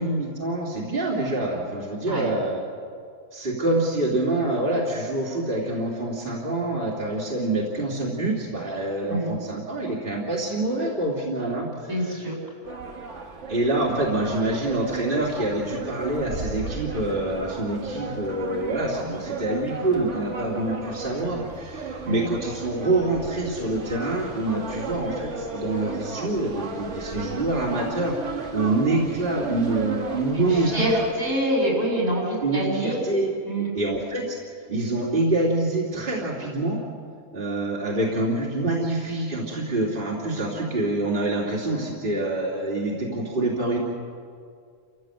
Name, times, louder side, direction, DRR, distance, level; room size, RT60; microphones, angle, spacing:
voice 1, 0.0-2.6 3.3-11.7 12.0-12.2 13.5-30.9 32.4-33.3 33.6-34.4 34.7-36.8 37.3-43.8, right 2 dB, 35° right, -4 dB, 3.0 m, -26 dB
voice 2, 11.9-12.4 22.0-22.2 30.3-33.0 33.5-33.7, right 1 dB, 75° right, -3 dB, 7.4 m, -25 dB
sound 1, 12.6-31.1, right 4 dB, 55° right, 1.9 m, -35 dB
29.5 x 15.0 x 7.9 m, 2.3 s
omnidirectional pair, 1.5 m